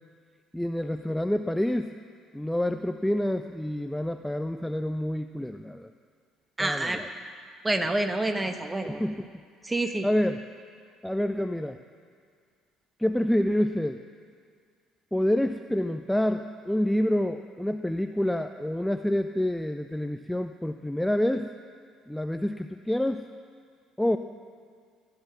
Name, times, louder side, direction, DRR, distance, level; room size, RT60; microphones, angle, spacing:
voice 1, 0.5-2.0 2.3-5.9 6.6-7.1 8.8-9.4 10.0-10.4 11.0-11.8 13.0-14.0 15.1-21.5 22.1-23.3 24.0-24.2, left 1 dB, 5° left, 8 dB, 0.4 m, -27 dB
voice 2, 6.6-7.0 7.6-9.0 9.6-10.1, right 2 dB, 15° right, 7 dB, 1.1 m, -28 dB
15.5 x 11.0 x 5.8 m, 2.1 s
figure-of-eight pair, 50°, 0 cm